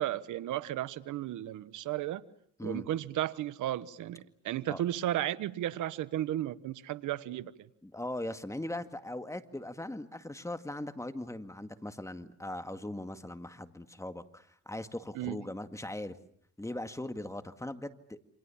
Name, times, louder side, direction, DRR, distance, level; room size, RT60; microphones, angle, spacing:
voice 1, 0.0-2.2 2.6-7.5 15.1-15.4, right 13 dB, 80° right, 1.2 m, -34 dB
voice 2, 7.8-16.2 16.6-18.2, left 1 dB, 10° left, 2.1 m, -39 dB
29.0 x 26.5 x 7.2 m
cardioid pair, 90°, 30 cm